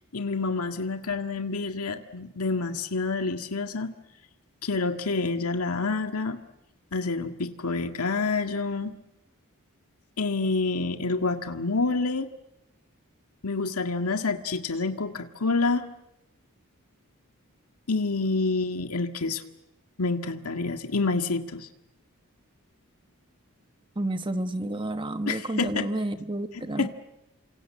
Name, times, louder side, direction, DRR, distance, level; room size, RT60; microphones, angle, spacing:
voice 1, 0.1-3.9 4.6-6.4 6.9-8.9 10.2-12.3 13.4-15.8 17.9-19.4 20.0-21.7 25.3-25.9 26.5-26.9, left 3 dB, 90° left, 6 dB, 1.9 m, -28 dB
voice 2, 24.0-26.9, right 1 dB, 25° right, 8 dB, 1.1 m, -30 dB
29.0 x 26.0 x 7.7 m, 0.88 s
head